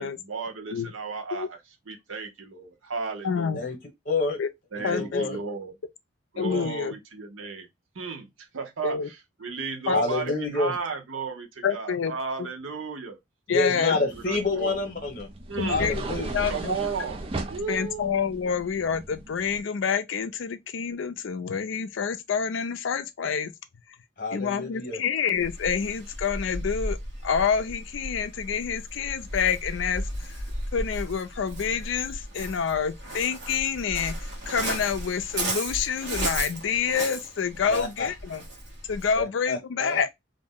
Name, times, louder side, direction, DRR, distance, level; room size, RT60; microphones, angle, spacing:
voice 1, 0.0-1.6 1.9-3.7 4.7-5.8 6.3-7.7 7.9-13.2 13.7-14.8 15.5-15.9 16.5-17.2 17.5-18.2, right 5 dB, 90° right, 0.8 m, -34 dB
voice 2, 3.2-3.6 4.4-4.5 4.8-5.2 6.4-6.9 8.8-9.1 9.9-10.0 11.6-12.1 12.4-12.5 13.5-14.0 15.6-16.0 16.3-16.8 17.7-23.5 24.3-27.0 27.2-30.3 30.7-34.2 34.5-38.4 38.9-40.1, left 6 dB, 75° left, 0.4 m, -27 dB
voice 3, 4.1-4.4 4.9-5.4 6.5-6.7 9.9-10.7 13.5-15.3 15.7-16.5 24.2-25.0 37.7-38.1 39.2-40.0, left 3 dB, 40° left, 0.9 m, -28 dB
sound 1, 14.1-19.6, right 2 dB, 30° right, 0.3 m, -37 dB
Waves surf, 25.3-39.2, right 1 dB, 65° right, 1.1 m, -35 dB
2.5 x 2.0 x 3.5 m
head